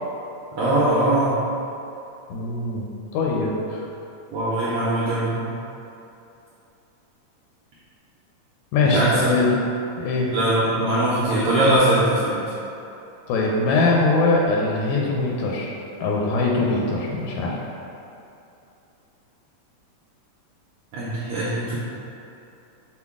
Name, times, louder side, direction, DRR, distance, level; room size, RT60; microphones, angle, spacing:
voice 1, 0.5-1.4 4.3-5.4 8.8-9.5 10.3-12.4 20.9-21.8, right 1 dB, 90° right, -8 dB, 1.3 m, -21 dB
voice 2, 2.3-3.8 8.7-9.5 10.0-10.3 13.3-15.7 16.0-17.6, left 3 dB, 85° left, -2 dB, 1.9 m, -22 dB
5.9 x 2.2 x 3.4 m, 2.8 s
omnidirectional pair, 3.3 m